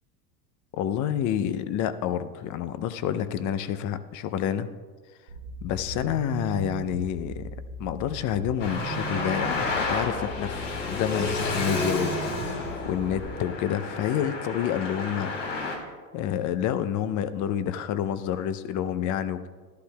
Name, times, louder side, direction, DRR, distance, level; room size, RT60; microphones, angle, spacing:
voice 1, 0.7-4.7 5.6-7.5 7.8-15.3 16.1-19.5, left 10 dB, 40° left, 13 dB, 0.6 m, -29 dB
sound 1, 5.3-13.3, right 3 dB, 55° right, 1.4 m, -38 dB
Traffic noise roadway noise, 8.6-15.8, left 3 dB, 85° left, 2.3 m, -31 dB
13.0 x 11.5 x 2.3 m, 1.5 s
hypercardioid pair, 90°, 49 cm